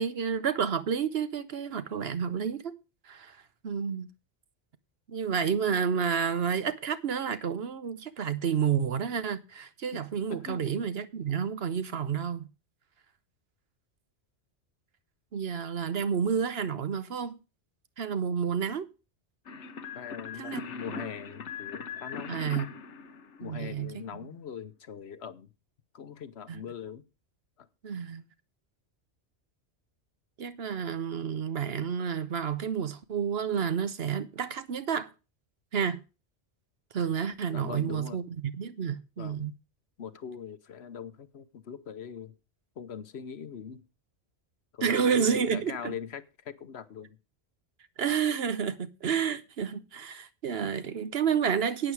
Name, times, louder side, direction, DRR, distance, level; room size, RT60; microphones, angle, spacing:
voice 1, 0.0-2.7 3.0-3.4 3.6-4.1 5.1-12.5 15.3-17.4 18.0-18.9 20.3-20.6 20.9-21.1 22.3-22.7 23.4-24.0 26.5-26.6 27.8-28.2 30.4-35.1 35.7-36.0 36.9-39.5 44.8-45.9 48.0-51.9, right 7 dB, 65° right, 1.1 m, -30 dB
voice 2, 10.3-10.6 19.9-22.4 23.4-25.5 25.9-27.0 27.6-27.7 37.5-38.2 39.2-39.5 40.0-42.3 42.8-43.8 44.7-47.2, left 7 dB, 70° left, 1.1 m, -41 dB
sound 1, 19.5-23.9, left 6 dB, 90° left, 1.3 m, -41 dB
11.0 x 9.0 x 4.7 m
omnidirectional pair, 1.1 m